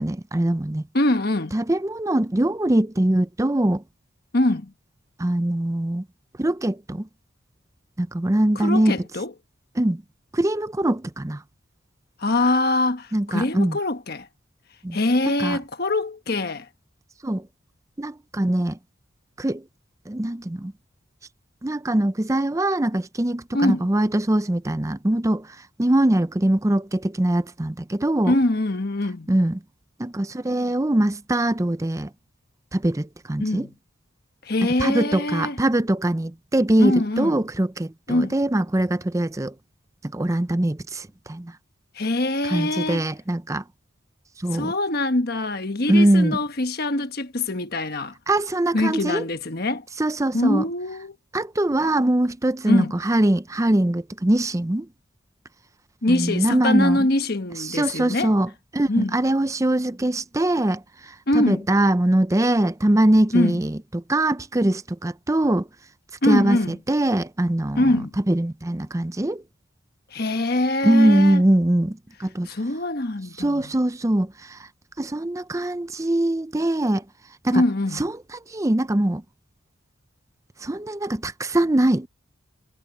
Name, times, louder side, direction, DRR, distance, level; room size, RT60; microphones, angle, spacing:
voice 1, 0.0-0.8 1.5-3.8 5.2-6.0 6.4-7.1 8.0-9.0 9.8-10.0 10.3-11.4 13.1-13.8 14.8-15.0 15.4-15.6 17.2-17.5 18.0-18.8 19.4-19.6 20.1-20.7 21.6-28.3 29.3-29.6 30.0-32.1 32.7-33.7 34.8-39.5 40.0-41.5 42.4-43.6 44.4-44.7 45.9-46.4 48.3-49.2 50.0-50.6 51.3-54.9 56.1-57.1 57.6-65.7 66.2-69.4 70.8-72.5 73.4-74.7 75.0-77.0 77.4-77.6 77.9-79.2 80.6-82.1, right 1 dB, 15° right, 0.5 m, -22 dB
voice 2, 0.9-1.5 4.3-4.7 8.5-9.3 12.2-14.3 14.9-16.7 23.5-23.8 28.3-29.3 33.4-33.7 34.5-35.6 36.8-37.4 38.1-38.3 42.0-43.0 44.5-48.1 48.7-49.8 50.3-51.2 52.7-52.9 56.0-58.3 58.9-59.2 61.3-61.6 63.3-63.6 66.2-66.8 67.8-68.1 70.1-71.4 72.5-73.7 77.5-78.0, left 1 dB, 50° left, 1.3 m, -23 dB
head